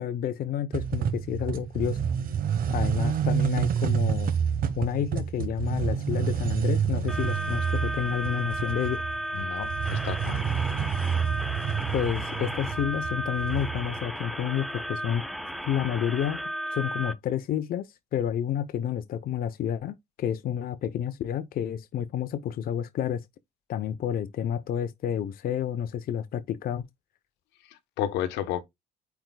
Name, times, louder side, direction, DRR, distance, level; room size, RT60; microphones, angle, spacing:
voice 1, 0.0-2.1 2.7-4.3 4.8-9.0 11.9-15.2 15.6-16.4 16.7-23.2 23.7-26.8, left 9 dB, 60° left, 0.8 m, -30 dB
sound 1, 0.7-14.0, right 7 dB, 55° right, 1.3 m, -28 dB
sound 2, 7.1-17.1, equal, ahead, 1.0 m, -34 dB
voice 2, 9.3-10.4 27.7-28.6, left 10 dB, 80° left, 1.1 m, -32 dB
8.8 x 4.7 x 2.3 m
supercardioid pair, 85°, 17 cm